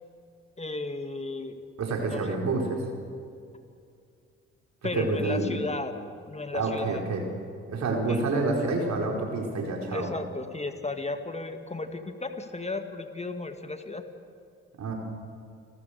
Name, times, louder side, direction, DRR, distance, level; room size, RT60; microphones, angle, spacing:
voice 1, 0.6-1.6 2.0-2.4 4.8-6.0 6.3-7.0 8.1-8.2 9.9-14.0, left 3 dB, 20° left, 7 dB, 2.1 m, -34 dB
voice 2, 1.8-2.8 5.0-5.5 6.5-7.2 7.7-10.1 14.8-14.9, right 3 dB, 55° right, 1 dB, 4.6 m, -28 dB
29.5 x 13.5 x 6.7 m, 2.3 s
hypercardioid pair, 45°, 33 cm